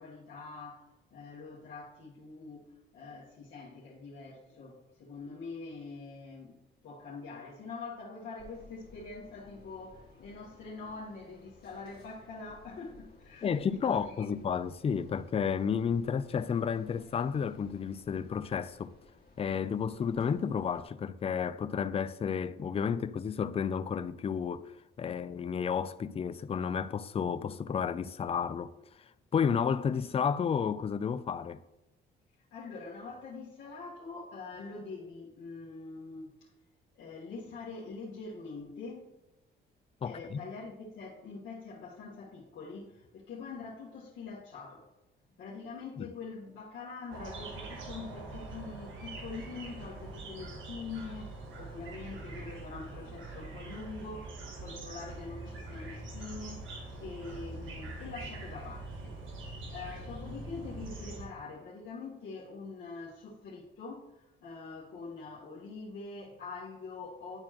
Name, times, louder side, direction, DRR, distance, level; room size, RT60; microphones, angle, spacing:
voice 1, 0.0-14.3 32.5-36.5 36.9-39.1 40.0-44.8 45.4-59.2 59.7-67.4, left 4 dB, 70° left, 1.5 m, -44 dB
sound 1, 8.4-20.8, left 3 dB, 50° left, 2.3 m, -58 dB
voice 2, 13.4-18.9 19.4-28.7 29.3-31.6 40.0-40.4 46.0-46.1, left 7 dB, 30° left, 0.4 m, -32 dB
sound 2, 47.1-61.2, right 2 dB, 75° right, 1.5 m, -43 dB
10.5 x 4.4 x 2.9 m
cardioid pair, 90°, 20 cm